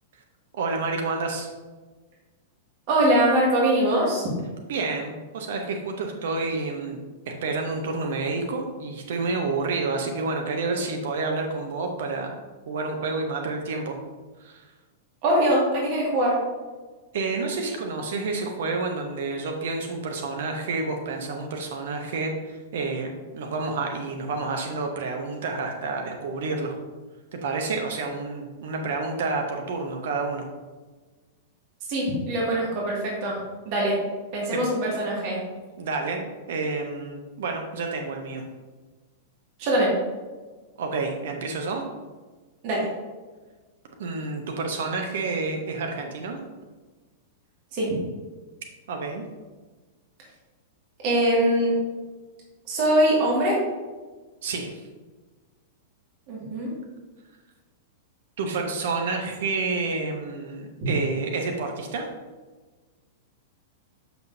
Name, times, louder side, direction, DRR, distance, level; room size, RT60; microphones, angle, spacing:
voice 1, 0.5-1.5 4.7-7.0 7.3-12.3 12.7-14.0 14.4-14.7 17.1-26.8 27.3-30.5 34.5-34.6 35.8-38.4 40.8-41.8 44.0-46.4 48.9-49.2 54.4-54.9 58.4-62.1, right 3 dB, 60° right, 3 dB, 0.8 m, -29 dB
voice 2, 2.9-4.3 15.2-16.4 31.9-33.4 33.7-34.0 34.3-35.4 39.6-39.9 42.6-42.9 47.7-47.9 51.0-51.8 52.7-53.6 56.3-56.7, right 1 dB, 45° right, -4 dB, 2.0 m, -22 dB
6.8 x 5.9 x 2.7 m, 1.3 s
figure-of-eight pair, 100°, 0 cm